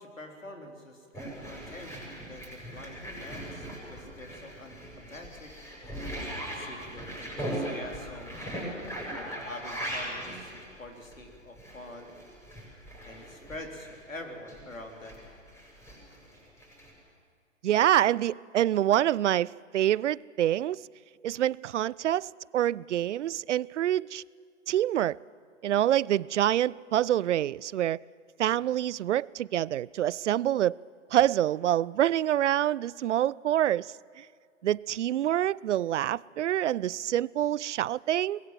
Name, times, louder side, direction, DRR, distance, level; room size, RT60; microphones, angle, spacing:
voice 1, 0.0-5.5 6.5-8.5 9.0-12.2 13.1-15.2 28.4-28.6, left 1 dB, 90° left, 3.8 m, -46 dB
sound 1, 1.1-14.1 14.5-16.9, right 1 dB, 5° left, 7.9 m, -39 dB
voice 2, 17.6-20.9 21.2-24.2 24.7-25.2 25.6-28.0 28.4-30.8 31.1-34.2 34.6-38.4, right 12 dB, 65° right, 0.5 m, -26 dB
23.5 x 21.0 x 7.5 m
figure-of-eight pair, 115°, 38 cm